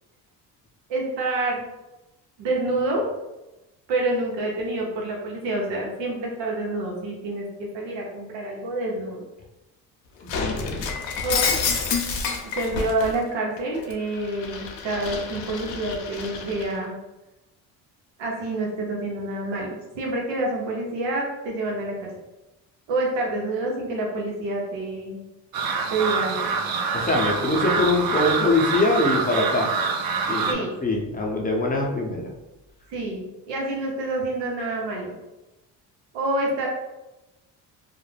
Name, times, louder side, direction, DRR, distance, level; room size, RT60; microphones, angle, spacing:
voice 1, 0.9-1.6 2.4-3.0 3.9-9.2 11.2-11.6 12.6-16.9 18.2-22.1 22.9-25.2 25.9-26.5 30.5-30.8 32.9-35.1 36.1-36.7, right 2 dB, 80° right, -1 dB, 0.9 m, -27 dB
voice 2, 10.2-10.9 26.9-29.9 30.3-32.3, left 2 dB, 20° left, -1 dB, 0.5 m, -23 dB
Shatter, 10.3-13.1 13.6-16.7, left 5 dB, 75° left, 0.6 m, -28 dB
sound 1, 25.5-30.5, right 5 dB, 55° right, 0.5 m, -25 dB
2.4 x 2.1 x 3.2 m, 1.0 s
supercardioid pair, 75°, 43 cm